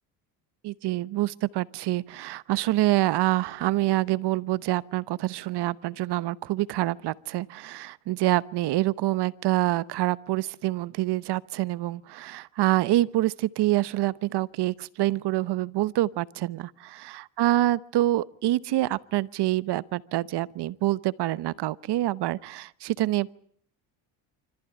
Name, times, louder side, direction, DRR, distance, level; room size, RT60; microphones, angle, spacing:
voice 1, 0.6-23.3, right 16 dB, 55° right, 1.0 m, -26 dB
26.0 x 14.5 x 10.0 m
supercardioid pair, 90°, 47 cm